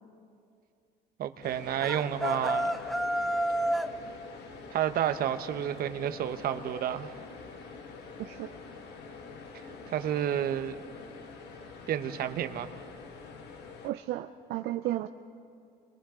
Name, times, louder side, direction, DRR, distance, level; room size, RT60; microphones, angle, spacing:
voice 1, 1.2-2.7 4.7-7.2 9.5-10.8 11.9-12.7, right 10 dB, 65° right, 9 dB, 1.1 m, -30 dB
sound 1, 1.4-13.9, left 4 dB, 75° left, 1.8 m, -46 dB
sound 2, 1.8-4.0, right 1 dB, ahead, 0.5 m, -29 dB
voice 2, 8.2-8.5 13.8-15.1, right 15 dB, 80° right, 7 dB, 0.6 m, -33 dB
30.0 x 23.5 x 3.8 m, 2.4 s
cardioid pair, 110°, 17 cm